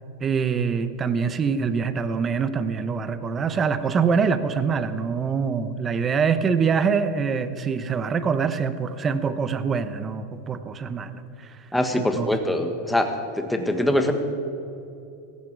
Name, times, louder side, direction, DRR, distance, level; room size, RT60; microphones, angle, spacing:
voice 1, 0.2-11.6 11.9-12.3, right 6 dB, 25° right, 12 dB, 0.9 m, -24 dB
voice 2, 11.7-14.1, left 1 dB, 5° left, 5 dB, 1.6 m, -23 dB
17.5 x 15.5 x 4.7 m, 2.7 s
supercardioid pair, 125°, 0 cm